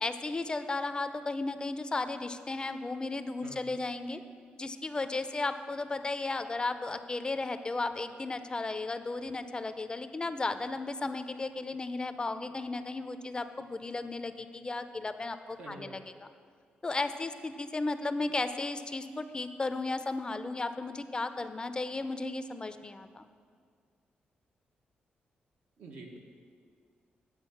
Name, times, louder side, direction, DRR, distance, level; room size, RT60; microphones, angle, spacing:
voice 1, 0.0-4.2 4.6-16.0 16.8-23.3, left 3 dB, 25° left, 10 dB, 0.4 m, -34 dB
voice 2, 3.4-3.7 15.6-16.0 25.8-26.2, right 2 dB, 90° right, 0 dB, 1.1 m, -47 dB
8.8 x 3.9 x 7.0 m, 2.1 s
cardioid pair, 85°, 3 cm